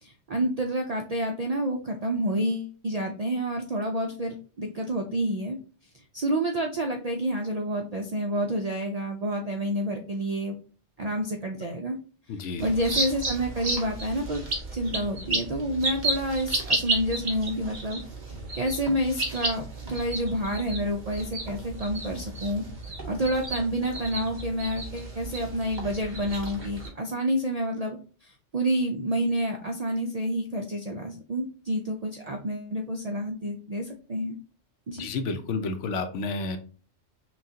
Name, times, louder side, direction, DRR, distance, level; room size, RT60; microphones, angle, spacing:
voice 1, 0.0-5.6 5.9-10.5 11.0-12.0 12.6-14.4 14.7-18.0 18.5-34.4 34.9-35.1, equal, 60° right, 3 dB, 0.4 m, -29 dB
voice 2, 12.3-12.7 35.0-36.6, left 3 dB, 75° left, 8 dB, 0.9 m, -30 dB
sound 1, 12.6-26.9, right 2 dB, 40° right, 1.1 m, -33 dB
5.8 x 2.3 x 2.7 m, 0.39 s
omnidirectional pair, 1.3 m